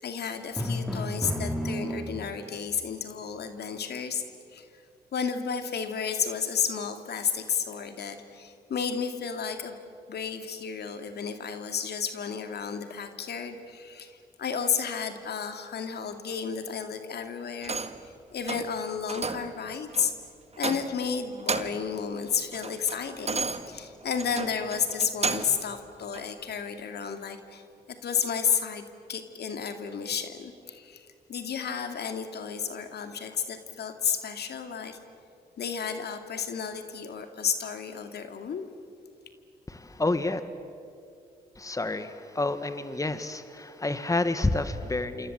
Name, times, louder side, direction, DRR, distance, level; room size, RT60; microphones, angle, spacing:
voice 1, 0.0-4.2 4.5-4.7 5.1-9.7 10.1-17.8 18.3-20.1 20.6-27.6 28.0-28.8 29.1-35.0 35.6-38.7, left 7 dB, 65° left, 7 dB, 2.5 m, -32 dB
Drum, 0.6-2.6, equal, ahead, 4.2 m, -31 dB
sound 1, 17.6-18.1 18.5-18.7 19.1-19.5 19.9-20.1 20.6-21.1 21.3-21.9 22.3-25.6 26.1-26.3, right 4 dB, 35° right, 1.8 m, -33 dB
voice 2, 39.7-40.4 41.6-45.3, left 2 dB, 20° left, 10 dB, 1.7 m, -29 dB
28.0 x 26.5 x 8.1 m, 2.5 s
supercardioid pair, 55°, 18 cm